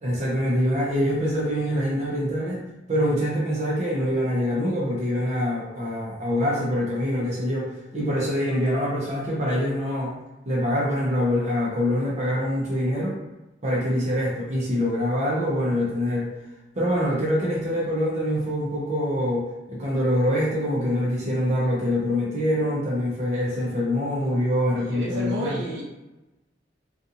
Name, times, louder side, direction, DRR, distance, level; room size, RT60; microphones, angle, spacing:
voice 1, 0.0-2.6 2.9-10.1 10.5-13.2 13.6-16.3 16.7-25.6, equal, 40° right, -5 dB, 0.6 m, -25 dB
voice 2, 24.8-25.8, right 1 dB, 85° right, -4 dB, 0.8 m, -31 dB
2.7 x 2.4 x 2.5 m, 1.0 s
head